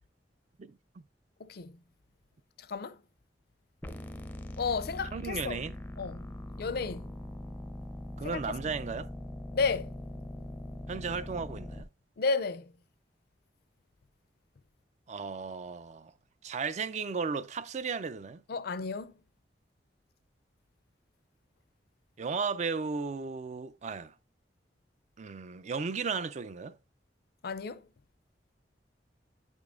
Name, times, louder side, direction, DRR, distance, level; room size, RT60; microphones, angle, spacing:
voice 1, 0.6-1.0 5.1-5.7 8.2-9.1 10.9-11.9 15.1-16.1 16.4-18.4 22.2-24.1 25.2-26.8, right 5 dB, 40° right, 0.4 m, -35 dB
voice 2, 1.4-1.8 2.7-3.0 4.6-5.6 6.0-6.2 6.6-7.1 8.2-8.4 9.5-9.9 12.2-12.6 18.5-19.1 27.4-27.8, left 4 dB, 60° left, 0.5 m, -32 dB
sound 1, 3.8-11.8, left 1 dB, 10° left, 0.5 m, -42 dB
9.5 x 5.1 x 2.5 m
head